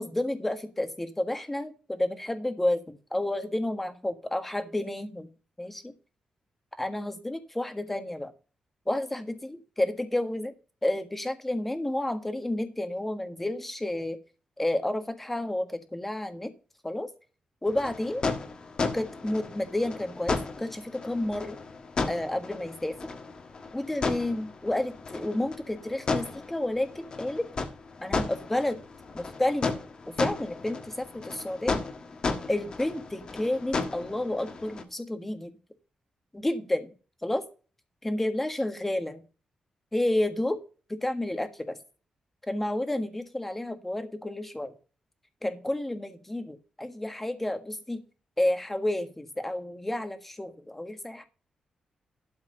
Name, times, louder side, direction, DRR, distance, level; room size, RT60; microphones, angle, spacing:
voice 1, 0.0-5.3 5.6-5.9 6.8-8.3 8.8-10.5 10.8-14.2 14.6-16.5 16.8-17.1 17.6-18.2 18.8-21.6 22.1-23.0 23.7-27.5 28.0-28.8 29.1-29.7 30.2-31.8 32.5-35.5 36.3-36.9 37.2-37.4 38.0-39.2 39.9-40.6 40.9-41.8 42.5-44.7 45.4-48.0 48.4-51.2, left 1 dB, 10° left, 8 dB, 1.5 m, -30 dB
sound 1, 17.7-34.8, left 4 dB, 40° left, 1.6 m, -34 dB
12.5 x 4.7 x 6.8 m, 0.35 s
wide cardioid pair, 160°, 2 cm